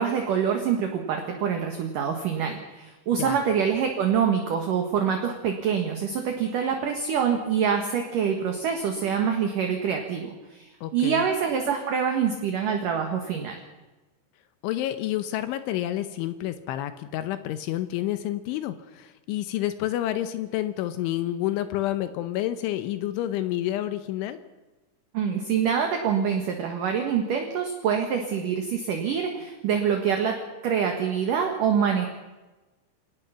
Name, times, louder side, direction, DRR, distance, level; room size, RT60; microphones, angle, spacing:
voice 1, 0.0-13.6 25.1-30.4 30.6-32.1, right 7 dB, 60° right, 3 dB, 2.4 m, -25 dB
voice 2, 10.8-11.3 14.6-24.4, left 13 dB, 80° left, 11 dB, 3.2 m, -29 dB
26.0 x 18.5 x 5.8 m, 1.1 s
omnidirectional pair, 5.7 m